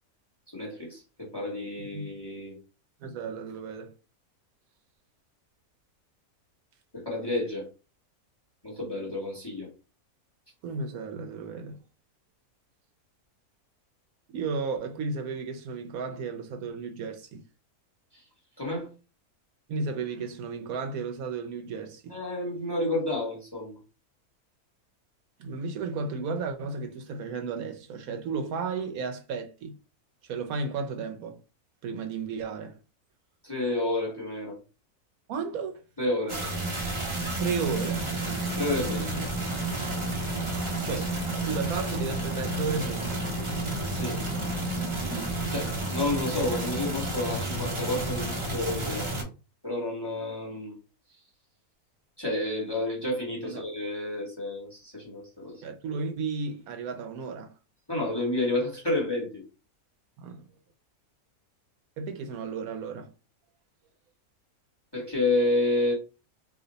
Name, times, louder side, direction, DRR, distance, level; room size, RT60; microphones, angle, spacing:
voice 1, 0.5-2.6 6.9-7.7 8.6-9.7 18.1-18.2 18.6-18.9 22.1-23.8 33.4-34.6 36.0-36.4 38.6-39.3 43.9-44.3 45.5-49.3 49.6-50.8 52.2-55.6 57.9-59.4 64.9-65.9, left 2 dB, 20° left, 1.0 m, -30 dB
voice 2, 1.8-2.1 3.0-3.9 10.6-11.8 14.3-17.4 19.7-22.2 25.4-29.8 30.2-31.4 31.8-32.8 35.3-35.9 37.4-38.1 40.8-43.2 53.4-53.7 55.6-57.5 60.2-60.4 62.0-63.1, right 4 dB, 75° right, 1.0 m, -34 dB
sound 1, 36.3-49.2, right 2 dB, 30° right, 0.6 m, -31 dB
2.6 x 2.1 x 3.8 m
omnidirectional pair, 1.6 m